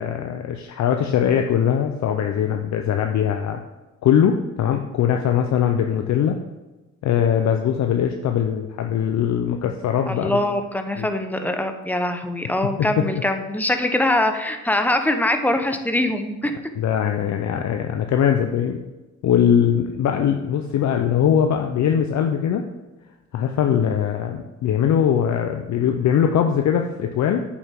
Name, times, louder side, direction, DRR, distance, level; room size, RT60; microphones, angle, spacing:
voice 1, 0.0-3.6 4.0-6.4 7.0-10.4 11.0-11.1 12.8-13.0 16.8-18.8 19.2-22.6 23.3-27.4, left 8 dB, 65° left, 5 dB, 0.7 m, -21 dB
voice 2, 10.1-16.6, left 1 dB, 5° left, 6 dB, 0.9 m, -23 dB
8.8 x 7.2 x 3.7 m, 1.1 s
cardioid pair, 90°, 30 cm